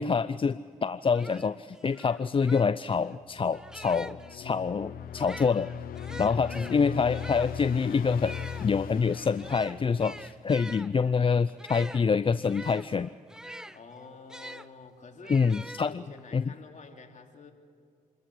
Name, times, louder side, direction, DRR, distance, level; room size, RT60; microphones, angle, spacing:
voice 1, 0.0-5.7 6.2-8.3 8.6-13.1 15.3-15.9 16.3-16.4, left 5 dB, 35° left, 14 dB, 0.5 m, -26 dB
sound 1, 0.7-0.8 1.1-4.4 5.1-14.7 15.2-16.3, right 1 dB, 5° right, 0.7 m, -45 dB
sound 2, 3.3-10.7, left 9 dB, 90° left, 0.6 m, -39 dB
voice 2, 6.1-6.4 13.7-15.4 15.8-17.5, left 4 dB, 55° left, 2 dB, 3.0 m, -49 dB
26.5 x 14.0 x 8.5 m, 2.2 s
cardioid pair, 60°, 15 cm